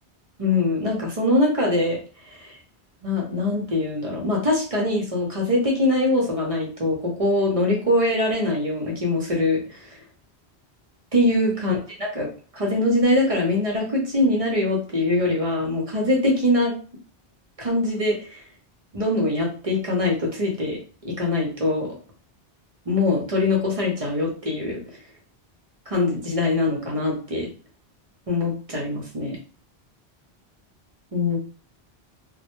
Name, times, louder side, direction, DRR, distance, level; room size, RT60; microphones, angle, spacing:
voice 1, 0.4-2.6 3.0-10.0 11.1-12.3 12.5-16.7 17.6-18.4 18.9-21.9 22.9-25.0 25.9-27.5 28.3-29.4 31.1-31.4, left 2 dB, 45° right, -2 dB, 0.5 m, -23 dB
2.1 x 2.0 x 2.9 m, 0.39 s
omnidirectional pair, 1.1 m